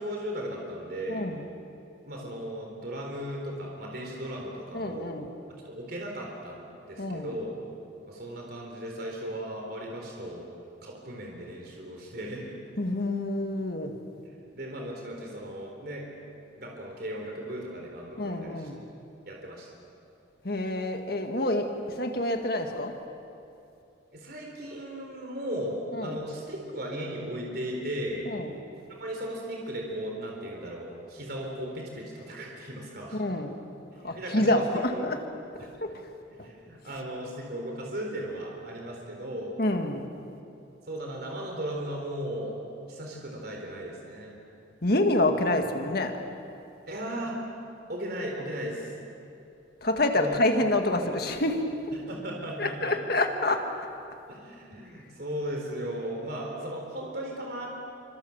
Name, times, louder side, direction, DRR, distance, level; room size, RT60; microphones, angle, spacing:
voice 1, 0.0-1.3 2.0-5.1 5.6-7.6 8.1-10.5 10.8-12.6 14.5-16.1 16.5-18.7 19.3-19.7 24.1-28.3 29.0-33.2 34.0-35.0 36.3-39.6 40.9-42.6 42.9-44.4 46.9-47.3 47.9-49.0 50.1-50.4 52.1-52.9 54.3-57.7, right 1 dB, 50° right, 0 dB, 4.1 m, -36 dB
voice 2, 1.1-1.5 4.7-5.3 7.0-7.4 12.8-14.0 18.2-18.8 20.4-23.0 25.9-26.2 28.3-28.5 33.1-33.6 34.0-35.2 35.8-36.1 36.4-36.5 39.6-40.1 44.8-46.2 49.8-51.6 52.6-53.7, left 1 dB, 50° left, 5 dB, 1.9 m, -27 dB
27.5 x 25.5 x 7.3 m, 2.7 s
head